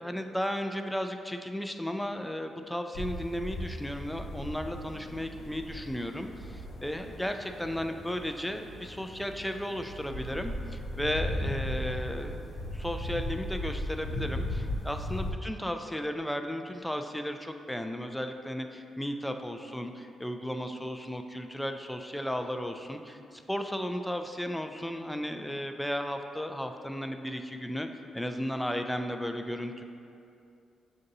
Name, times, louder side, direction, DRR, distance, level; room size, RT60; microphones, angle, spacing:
voice 1, 0.0-27.9 28.1-29.8, equal, 5° left, 6 dB, 0.3 m, -35 dB
sound 1, 2.9-15.3, left 1 dB, 65° left, 0.6 m, -37 dB
6.5 x 2.6 x 2.7 m, 2.5 s
supercardioid pair, 45°, 0 cm